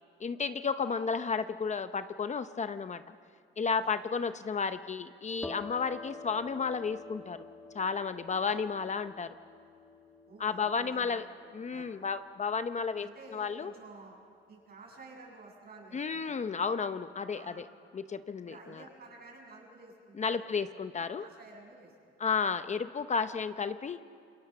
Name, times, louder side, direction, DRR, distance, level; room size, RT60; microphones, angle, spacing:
voice 1, 0.2-3.1 3.6-7.4 7.7-9.3 10.4-11.3 11.5-13.7 15.9-17.7 17.9-18.8 20.2-21.2 22.2-24.0, left 5 dB, 35° left, 11 dB, 0.8 m, -32 dB
sound 1, 5.4-12.9, left 3 dB, 10° left, 2.0 m, -49 dB
voice 2, 8.3-8.9 9.3-9.4 10.3-11.2 11.7-11.9 13.0-14.2 14.5-16.5 17.3-17.6 18.4-20.5 21.1-22.0, right 3 dB, 50° right, 0 dB, 7.3 m, -52 dB
28.0 x 23.0 x 6.9 m, 2.3 s
cardioid pair, 90°, 20 cm